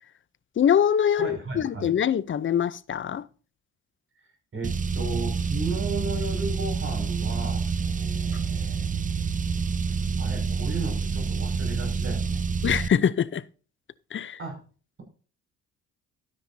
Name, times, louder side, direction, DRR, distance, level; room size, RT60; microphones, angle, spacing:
voice 1, 0.6-3.3 12.6-13.4 14.1-14.4, left 8 dB, 40° left, 0.7 m, -23 dB
voice 2, 1.1-1.9 4.5-9.0 10.2-12.4 14.4-14.6, right 2 dB, 40° right, 5.9 m, -35 dB
Car, 4.6-12.9, right 5 dB, 25° right, 0.6 m, -28 dB
12.5 x 9.9 x 2.7 m
cardioid pair, 90°, 30 cm